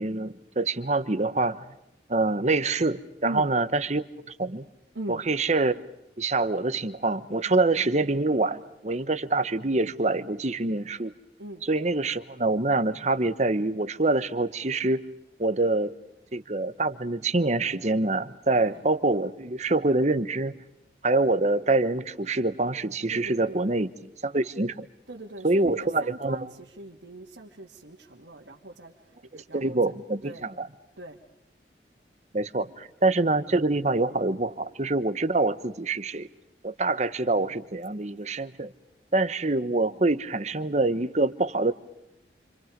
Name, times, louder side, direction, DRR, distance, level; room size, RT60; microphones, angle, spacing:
voice 1, 0.0-1.6 2.1-4.6 5.1-5.8 6.2-11.1 11.6-15.0 15.4-15.9 16.3-20.5 21.0-23.9 24.2-24.9 25.4-26.5 29.3-30.7 32.3-36.3 36.6-38.7 39.1-41.7, right 2 dB, 40° right, 13 dB, 1.1 m, -25 dB
voice 2, 18.5-18.9 23.1-23.8 25.1-29.8 30.2-30.5 31.0-31.2, right 1 dB, 90° right, -3 dB, 2.6 m, -41 dB
29.5 x 27.0 x 5.3 m, 0.88 s
head